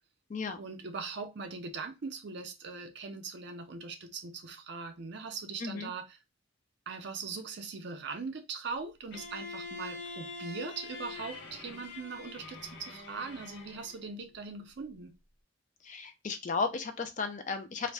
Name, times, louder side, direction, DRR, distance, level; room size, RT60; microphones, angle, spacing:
voice 1, 0.6-6.1 6.9-15.1, right 4 dB, 60° right, 0.5 m, -40 dB
voice 2, 5.6-5.9 15.8-17.9, left 4 dB, 40° left, 0.4 m, -34 dB
Bowed string instrument, 9.1-14.0, left 3 dB, 75° left, 0.9 m, -44 dB
2.5 x 2.1 x 3.2 m
head